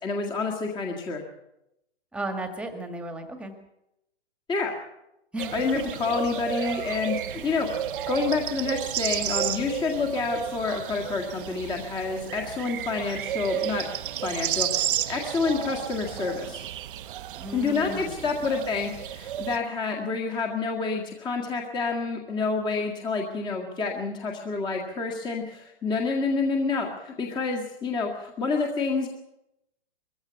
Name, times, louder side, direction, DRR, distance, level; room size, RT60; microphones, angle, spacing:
voice 1, 0.0-1.2 4.5-4.7 5.5-13.9 14.2-16.7 17.5-29.1, left 4 dB, 15° left, 1 dB, 1.9 m, -28 dB
voice 2, 2.1-3.6 5.3-5.8 17.4-18.4, right 1 dB, 5° right, 6 dB, 1.9 m, -35 dB
sound 1, 5.4-19.6, right 12 dB, 55° right, 0.9 m, -32 dB
21.5 x 15.5 x 8.2 m, 0.86 s
hypercardioid pair, 155°, 32 cm